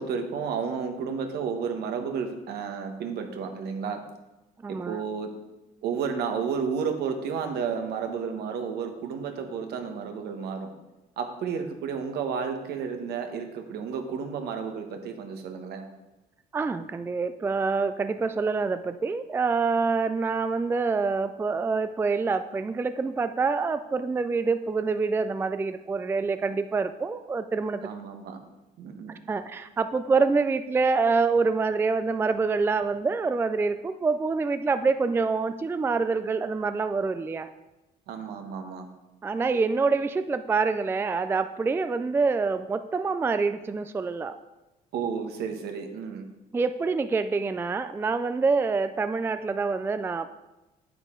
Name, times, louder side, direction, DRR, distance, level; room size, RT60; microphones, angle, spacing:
voice 1, 0.0-4.0 4.7-5.3 5.8-10.7 11.2-15.8 27.8-28.4 28.8-29.1 38.1-38.9 44.9-46.2, right 6 dB, 75° right, 5 dB, 1.3 m, -32 dB
voice 2, 4.6-5.0 16.5-27.9 29.3-37.5 39.2-44.4 46.5-50.3, right 4 dB, 15° right, 10 dB, 0.3 m, -26 dB
9.0 x 8.3 x 3.8 m, 1.0 s
cardioid pair, 110°, 17 cm